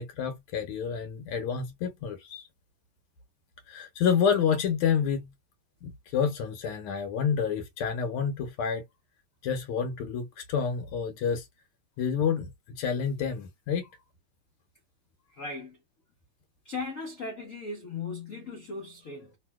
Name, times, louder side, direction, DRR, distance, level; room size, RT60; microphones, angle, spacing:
voice 1, 0.0-2.4 3.7-5.3 5.8-8.8 9.4-11.5 12.0-12.5 12.8-13.9, left 7 dB, 80° left, 1.6 m, -28 dB
voice 2, 15.3-15.8 16.6-19.4, left 3 dB, 60° left, 0.8 m, -37 dB
3.3 x 2.7 x 2.2 m
omnidirectional pair, 2.4 m